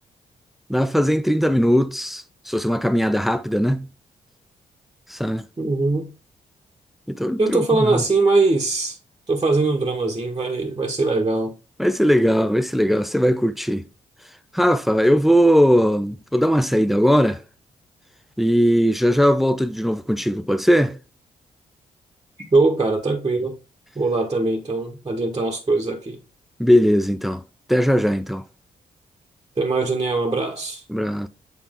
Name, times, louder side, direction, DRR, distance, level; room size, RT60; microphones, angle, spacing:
voice 1, 0.7-3.9 5.1-5.4 7.1-8.0 11.8-13.8 14.5-17.4 18.4-21.0 26.6-27.4 27.7-28.4 30.9-31.3, equal, ahead, 0.6 m, -19 dB
voice 2, 5.6-6.1 7.4-9.0 9.3-11.5 22.5-23.5 23.9-26.2 29.6-30.8, right 3 dB, 25° right, 1.2 m, -21 dB
7.1 x 4.2 x 3.6 m
supercardioid pair, 45°, 18 cm